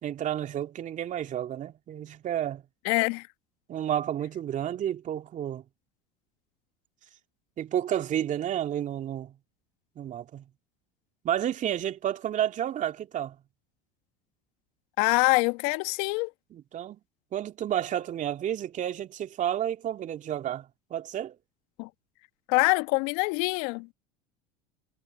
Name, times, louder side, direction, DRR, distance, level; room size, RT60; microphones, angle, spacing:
voice 1, 0.0-2.6 3.7-5.6 7.6-9.4 10.0-10.4 11.2-13.4 16.5-17.0 17.3-21.4, right 11 dB, 40° right, 2.4 m, -31 dB
voice 2, 2.8-3.3 15.0-16.3 21.8-21.9 22.5-23.9, left 29 dB, 65° left, 1.7 m, -25 dB
hypercardioid pair, 75°, 19 cm